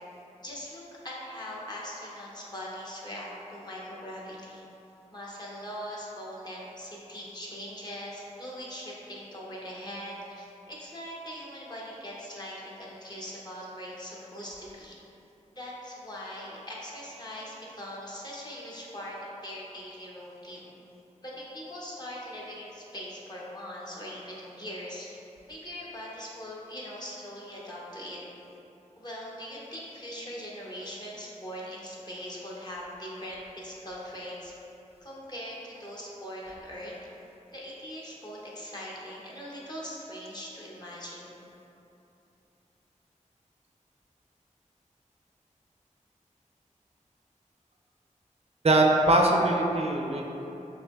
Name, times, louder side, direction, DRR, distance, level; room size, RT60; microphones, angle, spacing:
voice 1, 0.4-4.6 5.1-15.0 15.5-20.8 21.2-25.2 25.5-28.2 29.0-34.5 35.0-36.9 37.5-41.4, equal, 30° left, -5 dB, 0.9 m, -41 dB
voice 2, 48.6-50.2, right 1 dB, 50° right, 0 dB, 0.4 m, -22 dB
6.8 x 2.9 x 2.4 m, 2.9 s
wide cardioid pair, 75°, 13 cm